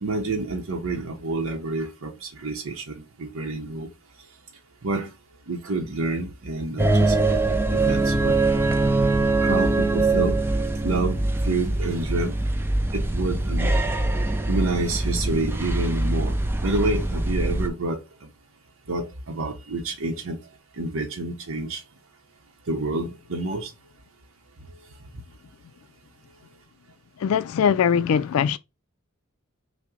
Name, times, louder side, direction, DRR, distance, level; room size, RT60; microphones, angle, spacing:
voice 1, 0.0-3.9 4.8-5.1 5.5-8.4 9.4-10.4 10.8-12.3 12.9-13.7 14.5-16.3 16.6-18.0 18.9-20.4 20.8-21.8 22.7-23.7, right 2 dB, 65° right, 0.8 m, -28 dB
sound 1, 6.8-17.7, right 2 dB, 10° right, 0.4 m, -23 dB
voice 2, 27.2-28.6, left 7 dB, 75° left, 0.3 m, -21 dB
5.6 x 2.1 x 3.7 m
head